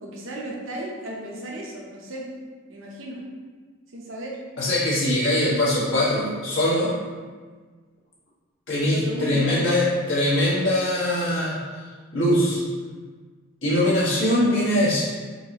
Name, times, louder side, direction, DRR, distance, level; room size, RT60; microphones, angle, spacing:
voice 1, 0.0-2.2 2.7-3.2 3.9-4.4 8.8-9.6, right 1 dB, 75° right, -2 dB, 0.8 m, -34 dB
voice 2, 4.6-7.0 8.7-11.6 12.1-12.6 13.6-15.0, left 1 dB, 70° left, -8 dB, 1.5 m, -22 dB
4.6 x 2.8 x 2.9 m, 1.5 s
head